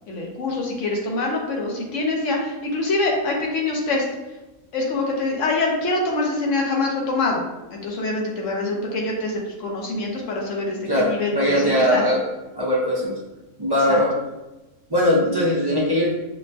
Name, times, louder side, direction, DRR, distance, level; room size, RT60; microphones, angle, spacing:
voice 1, 0.1-4.0 4.7-7.4 7.7-12.0 13.9-14.0, left 2 dB, 65° left, -1 dB, 1.0 m, -25 dB
voice 2, 10.9-12.2 12.5-13.2 13.6-14.1 14.9-16.1, left 1 dB, 40° right, -6 dB, 0.3 m, -20 dB
5.0 x 2.2 x 2.6 m, 1.1 s
omnidirectional pair, 1.5 m